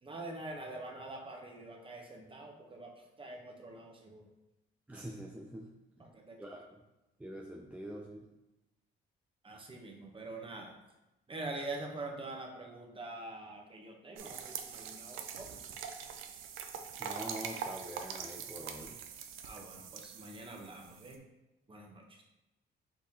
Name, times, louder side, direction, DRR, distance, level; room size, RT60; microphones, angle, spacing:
voice 1, 0.0-4.3 6.0-6.6 9.4-10.7 11.3-15.6 19.4-21.2 21.7-22.2, right 2 dB, 25° right, 1 dB, 0.9 m, -45 dB
voice 2, 4.9-5.7 6.4-6.8 7.2-8.3 17.0-19.0, equal, 5° right, 0 dB, 0.4 m, -45 dB
sound 1, 14.2-21.2, right 7 dB, 90° right, 0.5 m, -43 dB
4.6 x 3.6 x 2.8 m, 0.98 s
cardioid pair, 90°, 20 cm